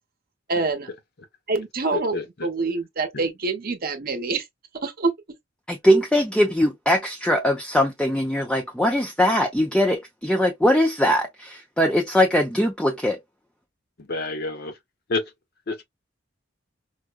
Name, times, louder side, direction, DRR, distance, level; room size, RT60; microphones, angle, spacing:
voice 1, 0.5-0.9 1.5-2.2 2.4-4.5 4.8-5.1, right 3 dB, 50° right, 0.8 m, -25 dB
voice 2, 1.9-2.2 3.1-3.3 14.0-14.7 15.1-15.2 15.7-15.8, left 3 dB, 55° left, 0.8 m, -28 dB
voice 3, 5.7-13.2, equal, 5° left, 0.5 m, -21 dB
4.6 x 2.1 x 2.2 m
head